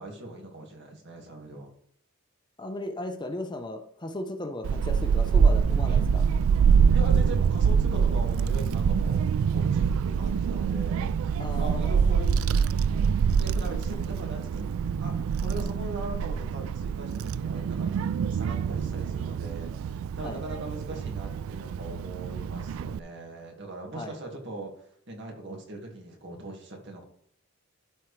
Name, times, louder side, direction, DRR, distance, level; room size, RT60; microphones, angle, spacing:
voice 1, 0.0-1.7 6.9-11.2 11.6-12.4 13.3-14.7 15.0-24.7 25.1-27.0, right 2 dB, 60° right, 2 dB, 2.0 m, -40 dB
voice 2, 2.6-6.2 11.4-12.0 20.2-20.4 23.9-24.1, left 1 dB, 20° left, 5 dB, 0.7 m, -36 dB
Child speech kid speaking / Wind, 4.6-23.0, right 6 dB, 80° right, 0.3 m, -25 dB
12.5 x 4.5 x 3.3 m, 0.66 s
head